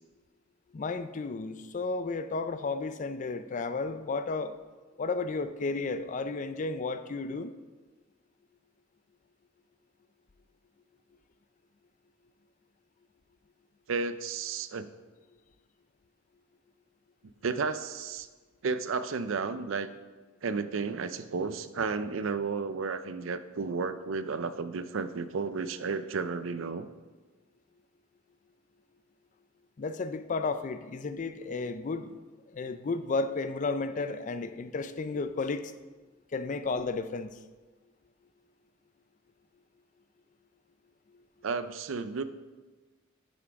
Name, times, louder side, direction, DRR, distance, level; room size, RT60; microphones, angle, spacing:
voice 1, 0.7-4.6 5.0-7.5 29.8-32.2 32.5-35.7 36.3-37.4, left 3 dB, 40° left, 12 dB, 0.4 m, -33 dB
voice 2, 13.9-14.9 17.4-18.3 18.6-19.9 20.4-26.9 41.4-42.2, right 4 dB, 75° right, 12 dB, 0.5 m, -32 dB
9.4 x 6.1 x 4.6 m, 1.3 s
head